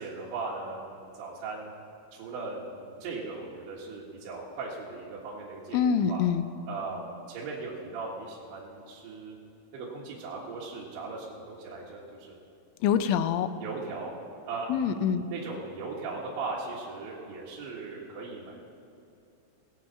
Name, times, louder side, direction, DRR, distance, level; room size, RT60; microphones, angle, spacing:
voice 1, 0.0-1.7 2.1-5.8 6.1-6.2 6.7-9.4 9.7-12.4 13.6-14.1 14.5-14.9 15.3-18.6, right 3 dB, 70° right, -5 dB, 3.8 m, -38 dB
voice 2, 5.7-6.4 12.8-13.5 14.7-15.3, left 7 dB, 85° left, 11 dB, 3.0 m, -25 dB
19.5 x 8.5 x 5.8 m, 2.7 s
omnidirectional pair, 5.6 m